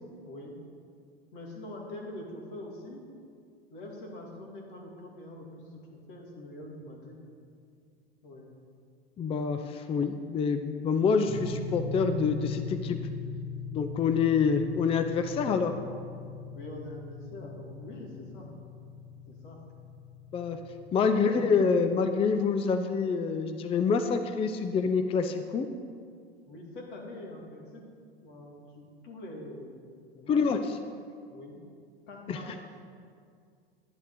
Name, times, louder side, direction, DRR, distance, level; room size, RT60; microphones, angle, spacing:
voice 1, 1.3-3.0 3.7-7.2 8.2-8.5 16.5-18.5 19.3-19.6 21.0-21.4 26.5-27.9 28.2-29.8 30.1-30.4 31.3-31.6 32.1-32.6, left 1 dB, 55° left, 0 dB, 2.3 m, -44 dB
voice 2, 9.2-13.0 13.7-15.7 20.3-20.6 20.9-25.7 30.3-30.8 32.3-32.6, left 5 dB, 20° left, 8 dB, 0.5 m, -27 dB
sound 1, 11.3-21.0, left 4 dB, 20° right, 1.1 m, -40 dB
10.5 x 10.5 x 3.9 m, 2.2 s
figure-of-eight pair, 85°, 30 cm